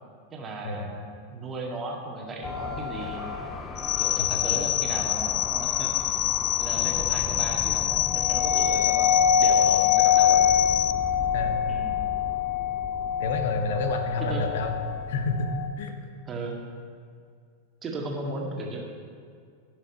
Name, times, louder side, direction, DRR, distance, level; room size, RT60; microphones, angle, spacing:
voice 1, 0.3-3.3 4.0-5.9 6.6-10.4 11.7-12.0 14.3-14.5 16.3-16.6 17.8-18.8, right 2 dB, 20° right, -1 dB, 1.9 m, -36 dB
sound 1, 2.4-15.7, left 7 dB, 20° left, 1.0 m, -27 dB
sound 2, 3.8-10.9, left 15 dB, 35° left, 0.3 m, -26 dB
voice 2, 13.2-14.7 15.1-16.0, left 3 dB, 55° left, 5 dB, 1.3 m, -29 dB
15.5 x 6.6 x 4.2 m, 2.1 s
figure-of-eight pair, 90°, 0 cm